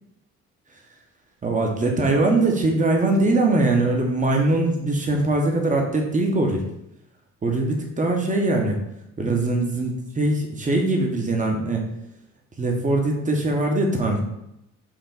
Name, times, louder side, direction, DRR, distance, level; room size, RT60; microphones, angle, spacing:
voice 1, 1.4-6.6 7.4-8.8 9.2-11.9 12.6-14.2, right 2 dB, 25° right, 1 dB, 1.0 m, -22 dB
4.6 x 2.5 x 3.9 m, 0.82 s
cardioid pair, 90°, 30 cm